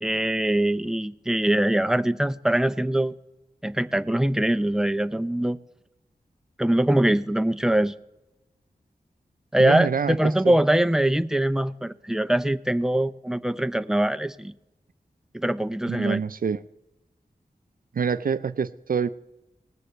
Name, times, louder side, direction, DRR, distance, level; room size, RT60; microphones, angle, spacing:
voice 1, 0.0-3.2 3.6-5.6 6.6-7.9 9.5-14.5 15.3-16.2, right 1 dB, 5° right, 0.6 m, -23 dB
voice 2, 9.6-10.5 15.9-16.6 17.9-19.1, right 6 dB, 65° right, 0.5 m, -26 dB
18.5 x 8.2 x 7.8 m
wide cardioid pair, 75°, 16 cm